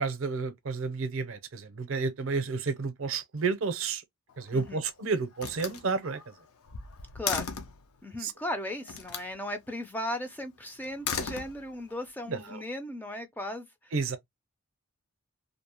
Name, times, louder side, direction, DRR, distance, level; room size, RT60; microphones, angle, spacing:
voice 1, 0.0-4.0 4.4-6.2 8.2-8.3 12.3-12.6 13.9-14.2, right 4 dB, 65° right, 0.5 m, -31 dB
Slam, 4.3-4.9 5.4-7.8 8.9-9.3 10.8-12.0, left 7 dB, 75° left, 0.5 m, -36 dB
voice 2, 7.1-7.5 8.0-13.9, left 1 dB, 10° left, 0.3 m, -36 dB
2.6 x 2.0 x 2.8 m
head